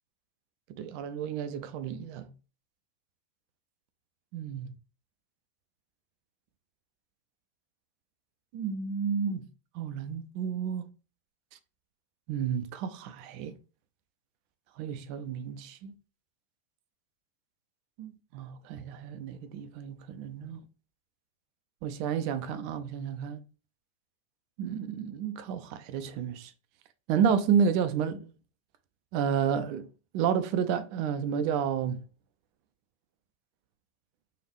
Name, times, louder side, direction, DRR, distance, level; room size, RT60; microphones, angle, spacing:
voice 1, 0.8-2.3 4.3-4.7 8.5-9.5 9.7-10.9 12.3-13.6 14.8-15.9 18.0-20.6 21.8-23.4 24.6-26.5 27.1-28.3 29.1-29.9 30.1-32.0, right 7 dB, 45° right, 0.6 m, -31 dB
4.6 x 3.5 x 3.1 m
figure-of-eight pair, 90°, 0 cm